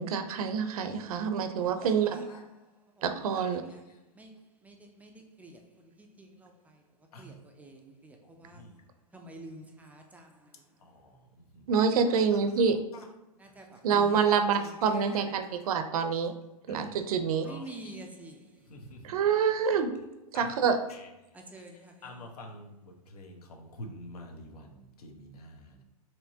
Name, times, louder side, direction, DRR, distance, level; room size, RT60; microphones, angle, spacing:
voice 1, 0.0-2.2 3.0-3.6 11.7-12.8 13.8-16.3 16.7-17.5 17.9-18.0 19.0-19.9 20.3-20.8, right 6 dB, 70° right, 0.6 m, -26 dB
voice 2, 4.6-5.6 6.0-6.5 7.2-8.6 9.1-10.5 13.4-14.2 14.6-14.9 17.4-18.6 21.3-22.2, right 1 dB, 10° right, 0.3 m, -48 dB
voice 3, 8.2-8.7 10.8-11.7 12.1-12.2 12.9-13.0 13.6-13.7 14.2-14.4 14.9-15.5 16.7-17.0 17.4-18.0 18.7-19.2 20.3-20.5 20.9-21.1 21.7-25.8, left 1 dB, 75° left, 1.0 m, -48 dB
4.5 x 3.1 x 2.7 m
hypercardioid pair, 135°, 19 cm